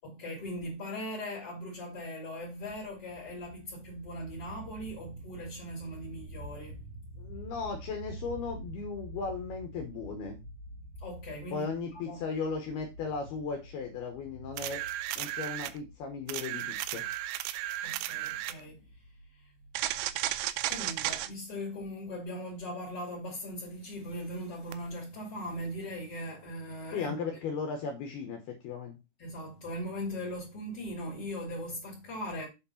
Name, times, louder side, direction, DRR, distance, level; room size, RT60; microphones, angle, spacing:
voice 1, 0.0-6.9 11.0-12.2 17.8-18.9 19.3-19.5 20.7-27.1 29.2-32.5, equal, 40° left, 2.2 m, -39 dB
sound 1, 2.4-20.3, right 1 dB, 70° right, 2.1 m, -48 dB
voice 2, 7.2-10.4 11.5-14.8 15.2-17.0 26.9-29.0, left 5 dB, 75° left, 2.4 m, -36 dB
sound 2, 14.6-15.8 16.3-18.6 19.7-21.3 24.7-24.8, right 14 dB, 85° right, 2.8 m, -34 dB
8.1 x 4.3 x 5.7 m
omnidirectional pair, 6.0 m